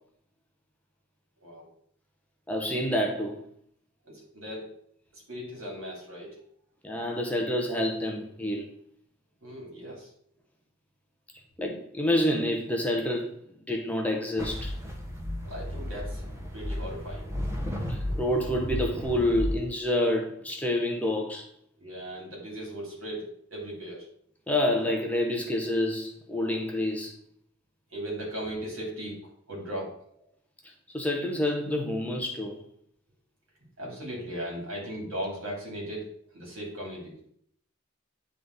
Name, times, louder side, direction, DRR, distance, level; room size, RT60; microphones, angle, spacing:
voice 1, 2.5-3.4 6.8-8.7 11.6-13.3 13.7-14.7 17.9-21.5 24.5-27.1 30.9-32.6, left 1 dB, 5° left, 0.6 m, -28 dB
voice 2, 4.0-4.8 5.1-6.4 9.4-10.1 15.4-17.3 21.8-24.1 27.9-29.2 29.5-29.9 33.8-36.0 36.3-37.1, equal, 65° right, 2.9 m, -37 dB
sound 1, 14.4-19.6, left 1 dB, 15° right, 1.0 m, -33 dB
9.3 x 3.7 x 3.9 m
head